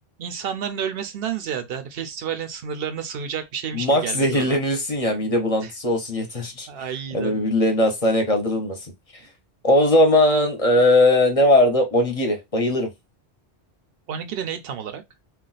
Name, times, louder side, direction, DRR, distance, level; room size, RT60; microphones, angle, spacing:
voice 1, 0.2-4.6 5.6-5.7 6.7-7.4 14.1-15.0, right 8 dB, 65° right, 0.8 m, -30 dB
voice 2, 3.7-6.7 7.1-8.9 9.6-12.9, left 1 dB, 35° left, 0.8 m, -19 dB
2.4 x 2.3 x 3.9 m
omnidirectional pair, 1.2 m